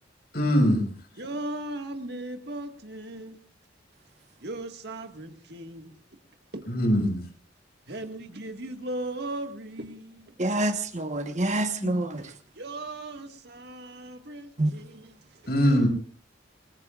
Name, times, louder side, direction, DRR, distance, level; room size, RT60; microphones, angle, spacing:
voice 1, 0.3-0.9 6.7-7.2 11.8-11.9 15.5-15.9, equal, 55° left, 6.4 m, -22 dB
voice 2, 1.2-3.4 4.4-6.0 6.5-6.6 7.9-10.3 12.2-12.3 12.6-15.1, right 1 dB, 60° right, 1.9 m, -37 dB
voice 3, 10.4-12.3 14.6-14.7, right 1 dB, 40° right, 1.3 m, -27 dB
27.5 x 20.5 x 2.5 m
head